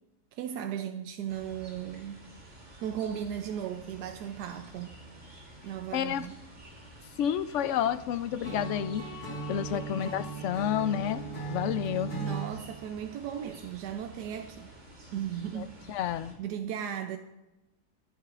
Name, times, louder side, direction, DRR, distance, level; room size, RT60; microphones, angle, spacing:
voice 1, 0.3-2.3 2.8-5.0 5.6-6.3 9.7-9.9 12.2-14.7 15.1-15.7 16.4-17.2, right 9 dB, 90° right, 1.2 m, -36 dB
sound 1, 1.3-16.3, right 1 dB, 45° right, 3.4 m, -51 dB
voice 2, 5.9-6.3 7.2-9.1 9.5-12.1 15.6-16.3, left 10 dB, 70° left, 0.7 m, -30 dB
Acoustic guitar / Strum, 8.4-12.5, right 5 dB, 35° left, 2.8 m, -37 dB
24.5 x 9.9 x 2.4 m
omnidirectional pair, 1.7 m